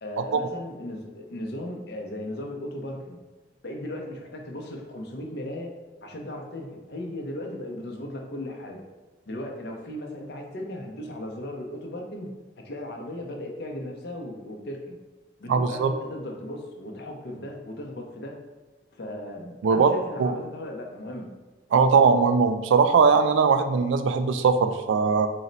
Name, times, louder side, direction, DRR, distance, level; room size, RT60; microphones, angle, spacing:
voice 1, 0.0-3.2 3.6-5.7 6.0-8.8 9.3-12.3 12.6-15.0 15.4-18.4 18.9-21.3, left 1 dB, 55° left, 1 dB, 0.6 m, -36 dB
voice 2, 15.5-15.9 19.6-19.9 20.2-20.3 21.7-25.3, right 5 dB, 80° right, 9 dB, 0.3 m, -20 dB
4.1 x 2.1 x 3.9 m, 1.2 s
head